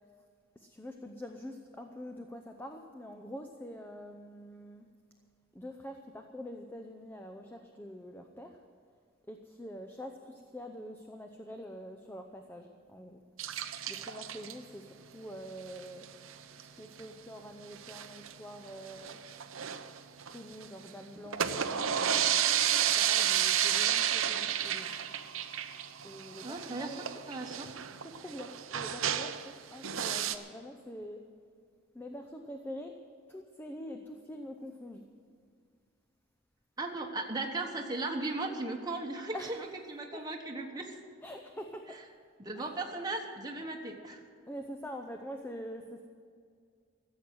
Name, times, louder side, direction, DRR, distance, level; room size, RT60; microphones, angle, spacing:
voice 1, 0.6-4.9 5.5-8.6 9.3-13.2 13.9-16.1 16.5-19.2 20.3-22.5 22.8-25.0 26.0-27.1 28.0-31.2 31.9-33.0 33.3-35.0 39.3-39.6 40.1-40.3 41.2-42.0 42.5-42.8 44.5-46.1, equal, 10° left, 4 dB, 0.6 m, -45 dB
sound 1, 13.4-14.5 15.8-16.0 16.3-16.4 16.6-16.7 17.0-17.1 17.7-18.3 18.8-20.7 21.2-29.5 29.8-30.3, right 9 dB, 90° right, 0.8 m, -31 dB
voice 2, 26.4-26.9 27.3-27.7 36.8-40.9 42.4-44.2, right 2 dB, 20° right, 0 dB, 1.2 m, -37 dB
15.0 x 7.8 x 9.5 m, 2.2 s
head